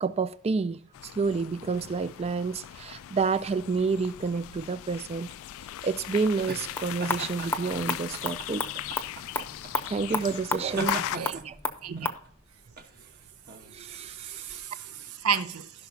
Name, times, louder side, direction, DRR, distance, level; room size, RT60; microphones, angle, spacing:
voice 1, 0.0-5.3 5.8-8.7 9.8-11.0 11.3-11.6 13.7-14.6, right 4 dB, 30° right, 0.3 m, -29 dB
sound 1, 0.9-11.2, left 12 dB, 65° left, 0.3 m, -39 dB
sound 2, 5.4-14.6, right 2 dB, 45° right, 1.3 m, -41 dB
sound 3, 6.5-12.2, left 3 dB, 10° left, 0.8 m, -34 dB
voice 2, 10.7-11.4 11.8-12.1 13.6-15.7, right 6 dB, 85° right, 0.8 m, -33 dB
16.5 x 5.7 x 2.8 m
head